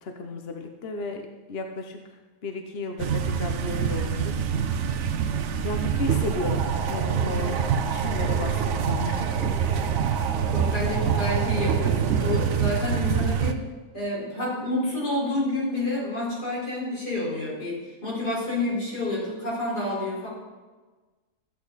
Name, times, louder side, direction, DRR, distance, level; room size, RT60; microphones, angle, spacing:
voice 1, 0.0-1.2 1.5-4.4 4.7-5.1 5.6-9.5, left 2 dB, 45° left, 4 dB, 1.0 m, -34 dB
sound 1, 3.0-13.5, right 7 dB, 60° right, 0.8 m, -25 dB
sound 2, 6.0-13.4, right 5 dB, 85° right, 1.9 m, -35 dB
voice 2, 10.5-13.6 13.9-20.3, left 2 dB, 70° left, -7 dB, 5.2 m, -29 dB
14.0 x 8.6 x 4.1 m, 1.3 s
omnidirectional pair, 1.8 m